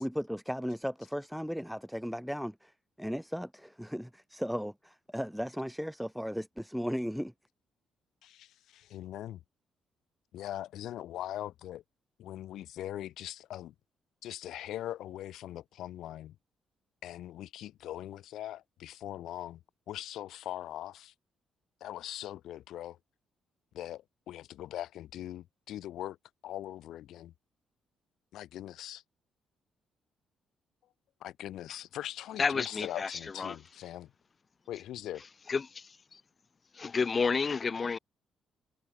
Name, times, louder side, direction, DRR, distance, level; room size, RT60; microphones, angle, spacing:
voice 1, 0.0-7.3, equal, ahead, 1.7 m, -36 dB
voice 2, 8.2-9.4 10.3-11.8 12.2-13.7 14.2-16.3 17.0-19.6 19.9-21.1 21.8-23.0 23.7-26.2 26.4-27.3 28.3-29.0 31.2-34.1 34.7-35.2, left 13 dB, 80° left, 2.9 m, -41 dB
voice 3, 32.4-33.6 35.5-36.2 36.7-38.0, left 5 dB, 35° left, 0.9 m, -31 dB
cardioid pair, 90°, 0 cm